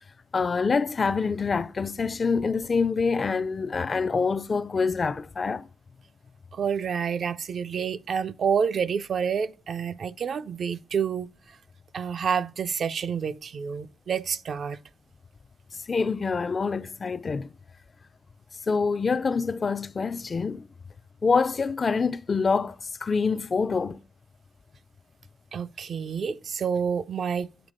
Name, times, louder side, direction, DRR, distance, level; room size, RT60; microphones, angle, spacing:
voice 1, 0.3-5.7 15.9-17.5 18.7-20.7 21.2-24.0, left 5 dB, 35° left, 0.3 m, -26 dB
voice 2, 6.5-11.3 11.9-14.8 25.5-27.5, right 7 dB, 55° right, 0.4 m, -28 dB
8.0 x 3.6 x 5.0 m
cardioid pair, 120°, 0 cm